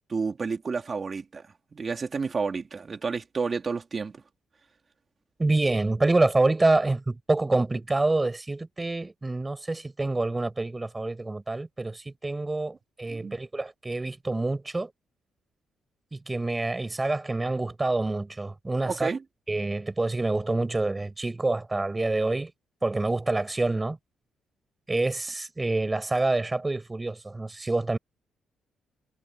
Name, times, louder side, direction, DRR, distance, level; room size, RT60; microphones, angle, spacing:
voice 1, 0.1-1.4 1.7-4.2 13.1-13.4 18.9-19.2, right 4 dB, 35° right, 3.8 m, -30 dB
voice 2, 5.4-14.9 16.1-19.1 19.5-22.5 22.8-24.0 24.9-28.0, right 2 dB, 20° right, 6.6 m, -27 dB
cardioid pair, 90°, 0 cm